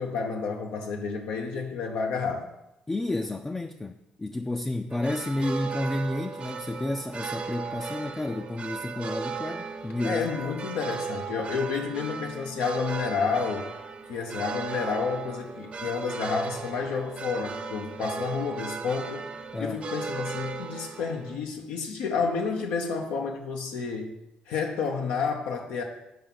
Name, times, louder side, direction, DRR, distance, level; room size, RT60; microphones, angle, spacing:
voice 1, 0.0-2.5 10.0-13.7 14.1-19.3 19.6-24.2 24.5-25.8, left 5 dB, 85° left, 0.7 m, -30 dB
voice 2, 2.9-10.3 19.5-19.8, left 1 dB, 15° left, 0.4 m, -31 dB
sound 1, 4.9-21.4, right 5 dB, 45° right, 0.7 m, -36 dB
5.6 x 4.5 x 5.8 m
cardioid pair, 75°, 3 cm